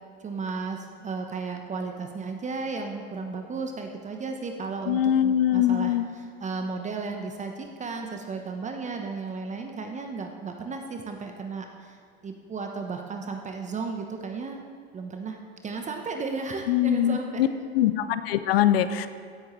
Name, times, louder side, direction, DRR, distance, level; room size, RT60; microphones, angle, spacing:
voice 1, 0.2-12.0 12.2-14.6 14.9-17.5, right 4 dB, 25° right, 4 dB, 0.9 m, -34 dB
voice 2, 4.9-6.0 16.7-17.5 17.7-19.1, left 11 dB, 70° left, 12 dB, 0.7 m, -22 dB
16.5 x 8.3 x 3.2 m, 2.3 s
hypercardioid pair, 85°, 31 cm